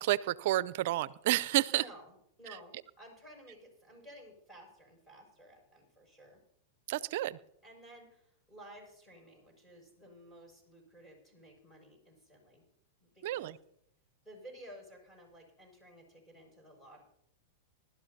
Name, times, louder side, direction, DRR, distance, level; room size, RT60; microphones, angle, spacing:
voice 1, 0.0-1.8 2.5-2.6 6.9-7.4 13.2-13.6, right 16 dB, 60° right, 20 dB, 0.5 m, -30 dB
voice 2, 1.7-6.4 7.6-12.6 13.0-13.5 14.2-17.0, right 1 dB, 10° left, 1 dB, 6.4 m, -54 dB
20.5 x 12.5 x 2.8 m, 0.72 s
hypercardioid pair, 115°, 0 cm